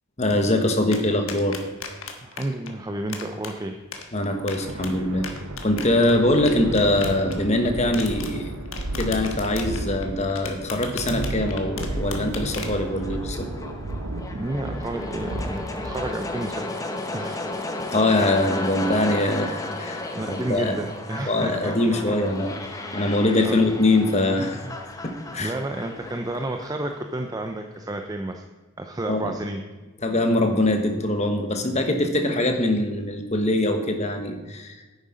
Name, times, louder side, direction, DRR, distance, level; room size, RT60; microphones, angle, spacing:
voice 1, 0.2-1.6 4.1-5.2 5.6-8.5 8.9-13.5 17.9-20.8 21.3-24.7 25.0-25.5 29.1-29.3 30.0-34.8, left 1 dB, 30° left, 5 dB, 1.2 m, -23 dB
sound 1, 0.9-2.7 3.1-3.5 3.9-4.9 5.2-7.7 7.9-8.3 8.7-12.8, left 6 dB, 65° left, 1.4 m, -35 dB
voice 2, 2.2-3.8 14.3-16.8 17.1-17.5 18.5-18.7 20.1-22.2 22.8-23.6 25.4-28.4 28.8-29.6, right 1 dB, 15° right, 5 dB, 0.5 m, -31 dB
sound 2, 4.3-16.6, right 2 dB, 85° right, 0.9 m, -33 dB
sound 3, 11.8-27.8, left 2 dB, 15° left, 0.9 m, -34 dB
10.5 x 9.5 x 5.1 m, 1.2 s
head